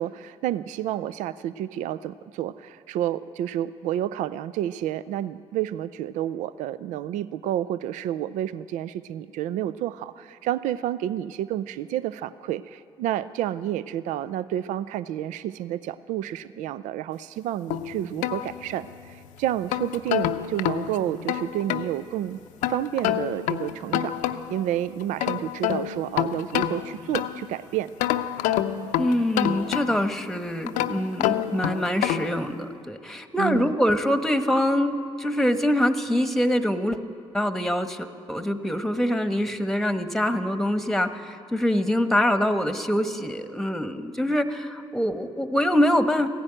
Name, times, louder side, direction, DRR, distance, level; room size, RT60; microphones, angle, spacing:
voice 1, 0.0-22.4 22.7-27.9 33.4-33.7, right 12 dB, 70° right, 16 dB, 0.4 m, -30 dB
sound 1, 17.7-19.0 19.5-21.9 22.6-24.6 25.0-27.5 28.0-30.2 30.7-32.4, left 11 dB, 80° left, 0.6 m, -27 dB
voice 2, 28.9-37.0 37.3-46.3, equal, 5° left, 9 dB, 1.2 m, -24 dB
15.5 x 10.5 x 8.9 m, 2.5 s
hypercardioid pair, 55°, 13 cm